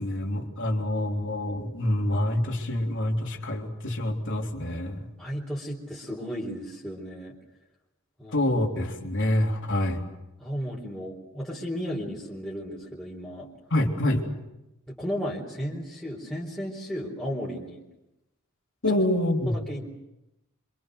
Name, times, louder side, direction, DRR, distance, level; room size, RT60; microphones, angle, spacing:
voice 1, 0.0-5.1 8.3-10.0 13.7-14.2 18.8-19.6, left 1 dB, 60° left, 1 dB, 3.6 m, -26 dB
voice 2, 5.2-7.3 8.2-8.3 10.4-13.5 14.9-17.8 18.9-19.0 19.5-19.9, equal, 5° left, -6 dB, 4.1 m, -34 dB
26.5 x 26.5 x 6.6 m, 0.95 s
head